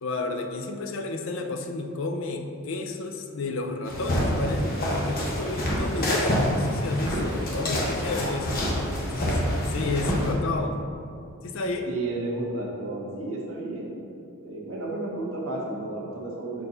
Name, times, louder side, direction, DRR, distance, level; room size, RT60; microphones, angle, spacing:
voice 1, 0.0-10.9 11.4-11.9, left 3 dB, 60° left, 5 dB, 0.5 m, -31 dB
sound 1, 3.8-10.3, equal, 40° left, 1.0 m, -27 dB
voice 2, 8.7-9.1 9.6-10.2 11.9-13.9 14.4-16.6, right 2 dB, 65° right, -3 dB, 1.2 m, -33 dB
4.4 x 3.9 x 5.5 m, 2.4 s
head